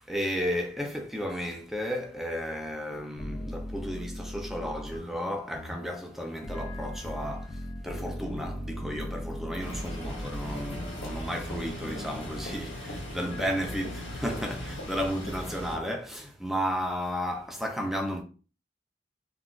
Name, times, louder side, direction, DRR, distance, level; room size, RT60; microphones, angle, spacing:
voice 1, 0.1-18.2, equal, ahead, 0.4 m, -33 dB
sound 1, 3.2-14.7, left 1 dB, 40° left, 0.6 m, -40 dB
sound 2, 9.6-15.8, equal, 85° left, 1.3 m, -39 dB
3.6 x 2.3 x 2.4 m
head